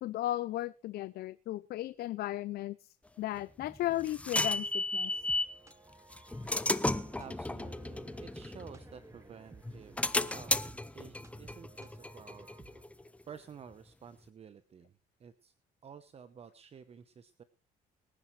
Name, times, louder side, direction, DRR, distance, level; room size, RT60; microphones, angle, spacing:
voice 1, 0.0-2.8 3.2-5.1, left 15 dB, 65° left, 16 dB, 0.6 m, -35 dB
sound 1, 3.4-5.6 6.1-9.2 9.6-13.1, left 2 dB, 5° left, 0.7 m, -34 dB
sound 2, 5.0-12.8, right 3 dB, 15° right, 1.3 m, -56 dB
voice 2, 7.2-10.5 10.9-12.5 13.3-14.9 15.2-15.5 15.8-17.4, right 7 dB, 35° right, 11 dB, 1.0 m, -51 dB
23.5 x 10.0 x 3.3 m, 0.32 s
cardioid pair, 110°, 17 cm